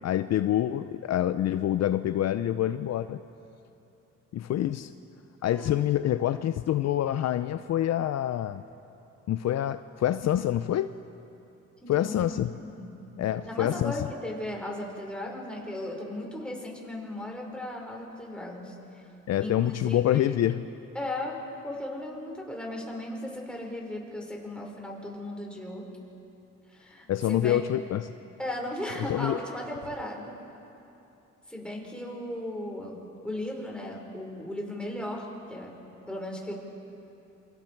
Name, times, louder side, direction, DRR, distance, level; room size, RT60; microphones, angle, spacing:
voice 1, 0.0-3.2 4.3-4.9 5.4-8.6 9.3-10.9 11.9-12.5 13.2-13.9 19.3-20.7 27.1-28.1 29.0-29.4, left 12 dB, 60° left, 12 dB, 0.6 m, -26 dB
voice 2, 5.4-5.8 11.8-13.0 13.4-19.0 19.4-20.4 20.9-25.9 26.7-27.6 28.4-30.4 31.5-35.7 36.1-36.5, left 1 dB, 5° left, -1 dB, 4.6 m, -37 dB
28.0 x 24.5 x 4.6 m, 2.9 s
cardioid pair, 90°, 30 cm